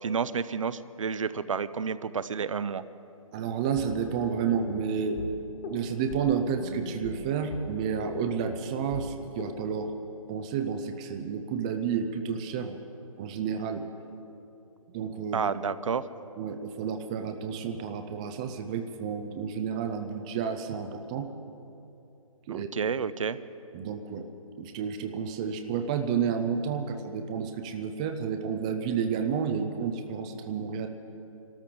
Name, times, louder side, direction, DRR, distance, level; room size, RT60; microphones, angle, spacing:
voice 1, 0.0-2.8 15.3-16.0 22.5-23.4, right 6 dB, 65° right, 15 dB, 0.6 m, -30 dB
voice 2, 3.3-5.2 5.7-9.9 10.3-12.8 13.2-13.8 14.9-15.5 16.4-21.3 22.5-22.7 23.7-24.3 24.6-30.9, right 7 dB, 10° right, 6 dB, 0.3 m, -31 dB
sound 1, 3.7-9.6, left 3 dB, 35° left, 1.8 m, -40 dB
25.0 x 13.5 x 3.7 m, 2.8 s
figure-of-eight pair, 145°, 18 cm